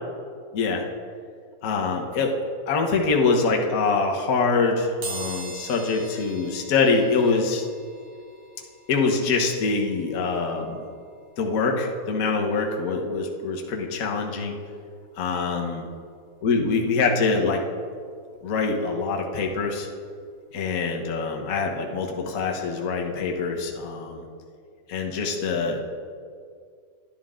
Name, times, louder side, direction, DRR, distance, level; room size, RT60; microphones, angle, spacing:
voice 1, 0.5-0.8 1.6-2.3 2.7-7.7 8.9-10.8 11.4-14.5 15.2-15.8 16.4-17.6 18.4-19.9 20.5-24.2 24.9-25.8, left 4 dB, 65° left, 1 dB, 0.8 m, -24 dB
sound 1, 5.0-15.7 16.2-16.3 17.4-17.5 17.8-19.9 20.2-22.9 23.2-23.4 23.7-23.8, right 3 dB, 60° right, 3.0 m, -45 dB
12.0 x 12.0 x 3.7 m, 2.2 s
omnidirectional pair, 3.4 m